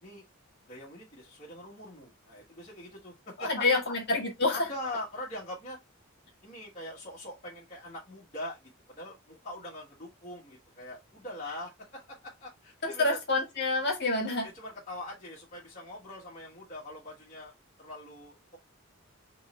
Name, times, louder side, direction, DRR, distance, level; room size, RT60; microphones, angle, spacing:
voice 1, 0.7-3.6 4.5-5.8 6.4-13.2 14.4-18.6, left 1 dB, 35° left, 1.4 m, -42 dB
voice 2, 3.4-4.7 12.8-14.5, left 2 dB, 50° left, 1.6 m, -27 dB
3.7 x 3.1 x 4.2 m
head